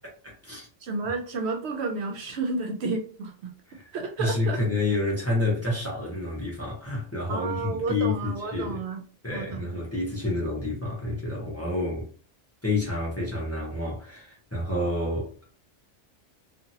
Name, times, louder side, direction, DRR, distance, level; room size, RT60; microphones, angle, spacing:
voice 1, 0.2-0.7 4.2-8.8 9.2-12.1 12.6-15.3, left 2 dB, 15° left, 0.9 m, -29 dB
voice 2, 0.8-3.5 3.9-4.6 7.3-9.0 9.3-9.8, right 3 dB, 70° right, 0.8 m, -31 dB
2.8 x 2.5 x 2.7 m
omnidirectional pair, 1.2 m